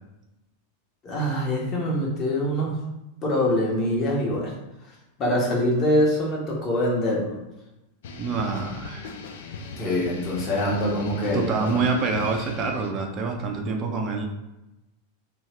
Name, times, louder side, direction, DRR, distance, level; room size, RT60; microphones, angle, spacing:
voice 1, 1.0-2.8 3.2-4.5 5.2-7.4 9.8-11.8, left 1 dB, 30° left, -3 dB, 1.0 m, -24 dB
sound 1, 8.0-13.0, left 4 dB, 55° left, 0.4 m, -38 dB
voice 2, 8.2-9.1 11.3-14.3, right 4 dB, 30° right, 2 dB, 0.5 m, -26 dB
2.7 x 2.3 x 3.2 m, 0.95 s
figure-of-eight pair, 90°, 0 cm